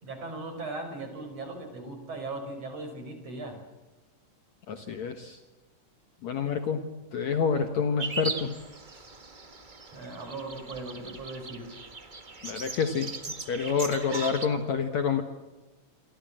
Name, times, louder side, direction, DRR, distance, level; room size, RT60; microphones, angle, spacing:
voice 1, 0.0-3.6 9.9-11.7, right 2 dB, 45° right, 7 dB, 6.3 m, -38 dB
voice 2, 4.7-5.4 6.2-8.5 12.4-13.1 13.5-15.2, left 6 dB, 60° left, 7 dB, 2.5 m, -28 dB
sound 1, 8.0-14.5, right 3 dB, 90° right, 0.4 m, -39 dB
28.5 x 23.5 x 7.7 m, 1.1 s
omnidirectional pair, 4.0 m